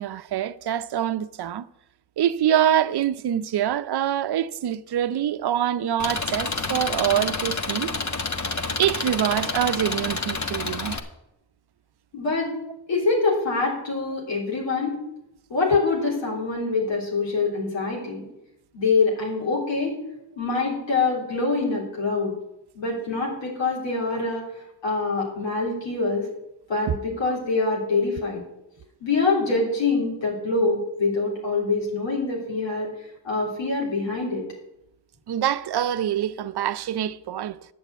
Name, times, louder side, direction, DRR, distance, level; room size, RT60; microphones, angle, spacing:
voice 1, 0.0-1.7 2.2-7.9 8.6-11.0 26.9-27.0 27.2-27.4 35.3-37.7, right 10 dB, 65° right, 0.6 m, -25 dB
Engine, 6.0-11.0, left 3 dB, 40° left, 1.3 m, -28 dB
voice 2, 12.1-12.5 12.9-14.9 15.5-18.2 18.7-20.0 20.4-22.3 22.8-24.5 24.8-26.3 26.7-28.4 29.0-32.9 33.2-34.4, left 3 dB, 90° left, 3.5 m, -25 dB
10.0 x 6.7 x 8.2 m
cardioid pair, 60°, 43 cm